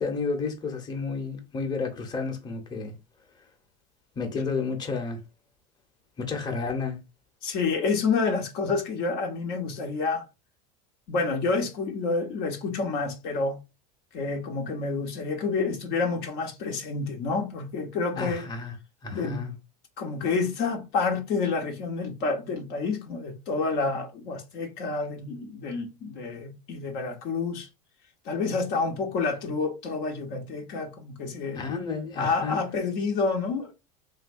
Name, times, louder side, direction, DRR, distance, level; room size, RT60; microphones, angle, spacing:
voice 1, 0.0-2.9 4.1-5.2 6.2-7.0 18.1-18.7 19.0-19.5 31.5-32.6, left 4 dB, 25° left, 0.9 m, -31 dB
voice 2, 7.4-10.3 11.1-13.6 14.1-18.5 19.1-19.4 20.0-27.7 28.2-31.6 32.2-33.7, left 4 dB, 55° left, 0.9 m, -28 dB
3.3 x 2.6 x 2.5 m
supercardioid pair, 105°, 18 cm